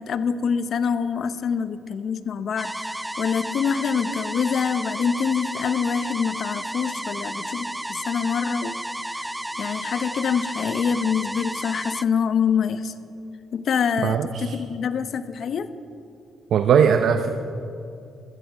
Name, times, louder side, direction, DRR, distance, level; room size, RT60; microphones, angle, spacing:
voice 1, 0.0-2.9 3.2-8.7 9.1-9.3 9.6-12.9 13.5-15.7, left 6 dB, 60° left, 12 dB, 0.7 m, -25 dB
sound 1, 2.6-12.0, right 1 dB, 5° right, 0.3 m, -32 dB
voice 2, 14.0-14.6 16.5-17.3, right 7 dB, 65° right, 8 dB, 0.6 m, -19 dB
14.5 x 14.0 x 4.9 m, 2.6 s
cardioid pair, 90°, 0 cm